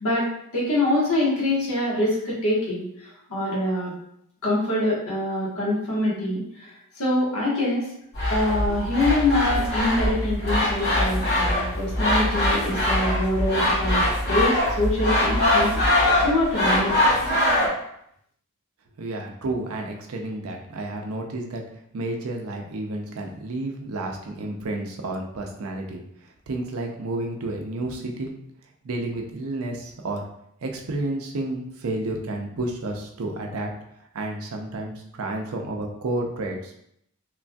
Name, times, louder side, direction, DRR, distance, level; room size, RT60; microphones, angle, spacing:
voice 1, 0.0-3.9 4.4-7.9 8.3-16.9, left 1 dB, 75° left, -6 dB, 1.2 m, -25 dB
sound 1, 8.1-17.7, left 1 dB, 50° left, 0.9 m, -22 dB
voice 2, 19.0-21.6 21.9-26.0 26.5-28.3 28.8-30.3 30.6-33.7 34.1-36.7, right 2 dB, 70° right, 2 dB, 0.5 m, -31 dB
3.1 x 2.5 x 2.2 m, 0.74 s
head